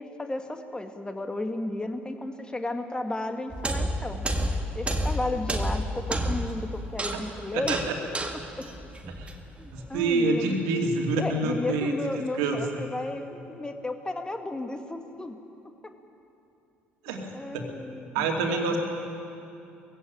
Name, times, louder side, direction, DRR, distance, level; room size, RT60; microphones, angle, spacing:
voice 1, 0.0-4.3 4.7-7.8 8.6-8.7 9.6-10.6 11.2-15.4 15.6-15.9 17.3-18.8, left 2 dB, 15° left, 6 dB, 1.9 m, -34 dB
sound 1, 3.5-9.8, right 1 dB, 20° right, 1.9 m, -30 dB
voice 2, 7.5-7.9 9.1-9.3 9.7-11.9 12.3-12.6 17.0-17.7 18.1-18.8, right 3 dB, 65° right, 2 dB, 2.6 m, -27 dB
21.0 x 15.5 x 8.9 m, 2.7 s
figure-of-eight pair, 55°, 6 cm